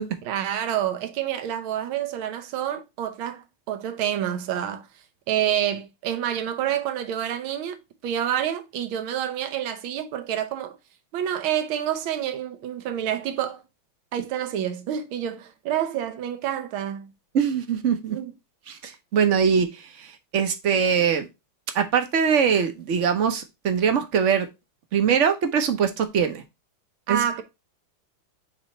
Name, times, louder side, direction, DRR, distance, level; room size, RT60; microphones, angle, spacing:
voice 1, 0.2-4.9 5.3-7.8 8.0-10.8 11.1-13.6 14.1-17.1 18.1-18.3 27.1-27.4, right 10 dB, 85° right, 1.7 m, -28 dB
voice 2, 17.3-18.2 18.7-21.3 21.7-24.5 24.9-26.4 27.1-27.2, right 7 dB, 55° right, 0.8 m, -22 dB
7.2 x 3.0 x 4.4 m
omnidirectional pair, 2.2 m